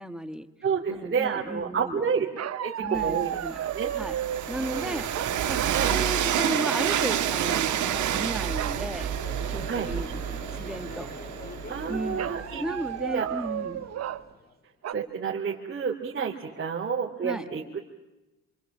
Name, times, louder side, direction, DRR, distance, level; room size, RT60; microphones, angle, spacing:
voice 1, 0.0-0.5 0.9-2.0 2.8-3.6 4.0-4.2 4.5-5.1 5.5-5.6 5.9-9.1 9.5-11.1 11.9-12.3 12.6-13.8 17.2-17.5, right 1 dB, ahead, 8 dB, 1.8 m, -34 dB
voice 2, 0.6-3.9 4.6-5.0 5.7-5.9 9.7-9.9 11.7-12.6 13.0-13.3 14.9-17.8, right 6 dB, 35° right, -4 dB, 3.1 m, -30 dB
sound 1, 2.4-4.5 5.1-5.9 6.2-6.5 6.8-7.1 8.6-8.8 9.4-9.5 9.8-10.3 12.2-14.2 14.8-14.9, right 11 dB, 55° right, 1.0 m, -33 dB
Train, 2.9-12.8, right 11 dB, 75° right, 1.8 m, -29 dB
Crowd, 4.4-14.5, left 3 dB, 30° left, 2.7 m, -44 dB
27.0 x 26.0 x 7.4 m, 1.0 s
cardioid pair, 90°, 30 cm